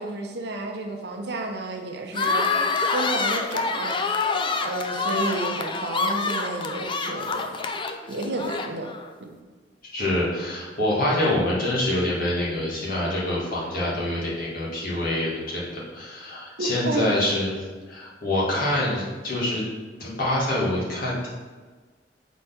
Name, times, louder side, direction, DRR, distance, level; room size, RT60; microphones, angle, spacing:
voice 1, 0.0-4.3 4.6-7.6 8.1-8.9 9.2-9.3 16.6-17.1, right 2 dB, 70° right, 2 dB, 0.8 m, -31 dB
sound 1, 2.1-9.1, left 4 dB, 30° left, 0.4 m, -26 dB
voice 2, 9.9-17.5 17.9-19.6 20.0-21.3, left 1 dB, 55° left, -6 dB, 1.9 m, -26 dB
4.6 x 4.1 x 5.7 m, 1.4 s
head